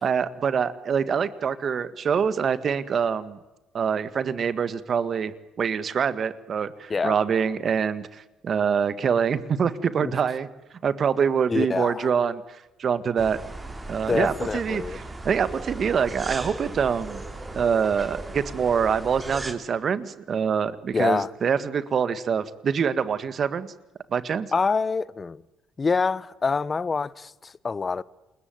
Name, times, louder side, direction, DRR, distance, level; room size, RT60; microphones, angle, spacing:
voice 1, 0.0-3.4 3.7-5.3 5.6-10.5 10.8-12.4 12.8-13.4 13.9-17.2 17.5-23.7 24.1-24.5, right 7 dB, 40° right, 1.8 m, -25 dB
voice 2, 11.5-12.1 14.1-15.0 20.9-21.3 24.5-25.4 25.8-28.0, left 4 dB, 25° left, 0.9 m, -26 dB
sound 1, 13.2-19.5, right 2 dB, 15° right, 3.2 m, -37 dB
28.5 x 21.5 x 9.4 m
cardioid pair, 120°, 0 cm